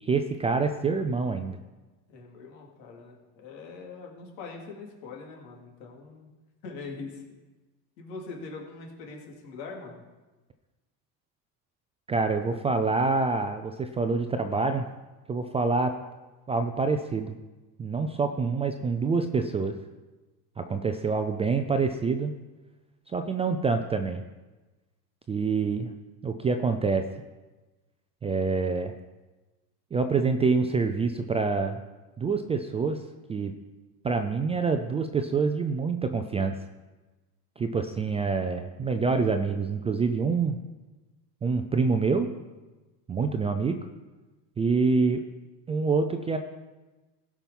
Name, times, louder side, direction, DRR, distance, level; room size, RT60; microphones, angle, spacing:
voice 1, 0.0-1.6 12.1-14.9 15.3-16.0 16.5-17.4 17.8-19.8 20.6-22.3 23.1-24.2 25.3-25.9 26.2-27.1 28.2-28.9 29.9-31.8 32.2-33.0 33.3-33.6 34.0-36.6 37.6-40.6 41.4-42.3 43.1-43.8 44.6-45.2 45.7-46.4, right 4 dB, 15° right, 7 dB, 0.3 m, -26 dB
voice 2, 2.1-6.3 6.6-7.2 8.0-10.0, left 4 dB, 80° left, -1 dB, 3.3 m, -42 dB
16.0 x 5.9 x 5.4 m, 1.2 s
supercardioid pair, 115°, 50 cm